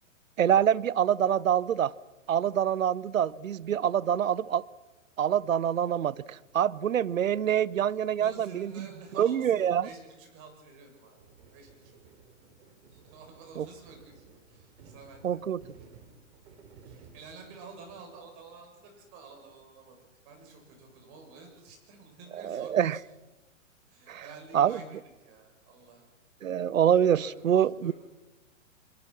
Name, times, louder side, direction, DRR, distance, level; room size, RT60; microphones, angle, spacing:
voice 1, 0.4-1.9 2.3-4.6 5.2-8.9 9.2-9.9 13.6-13.7 15.2-15.6 22.4-23.0 24.1-24.2 24.5-24.8 26.4-27.9, right 9 dB, 80° right, 21 dB, 0.8 m, -25 dB
voice 2, 7.9-11.2 11.5-11.9 12.9-15.4 16.8-20.0 20.2-23.0 23.9-26.1 27.2-27.9, right 4 dB, 35° right, 3 dB, 8.0 m, -50 dB
sound 1, 11.2-18.0, right 5 dB, 55° right, 4.4 m, -55 dB
24.5 x 22.5 x 6.1 m, 1.1 s
hypercardioid pair, 125°, 39 cm